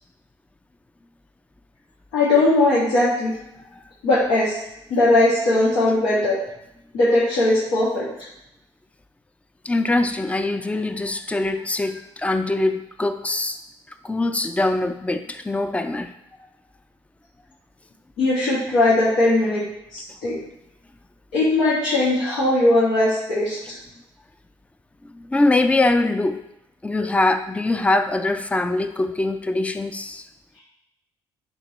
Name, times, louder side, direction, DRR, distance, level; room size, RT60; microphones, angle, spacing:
voice 1, 2.1-3.3 4.0-4.6 4.9-6.4 6.9-8.1 18.2-19.6 19.9-20.4 21.3-23.6, left 2 dB, 85° left, -10 dB, 2.3 m, -19 dB
voice 2, 9.6-13.6 14.0-16.1 25.1-26.4 26.8-30.3, left 2 dB, 10° left, 8 dB, 0.5 m, -23 dB
9.6 x 3.7 x 3.1 m, 0.83 s
supercardioid pair, 70°, 11 cm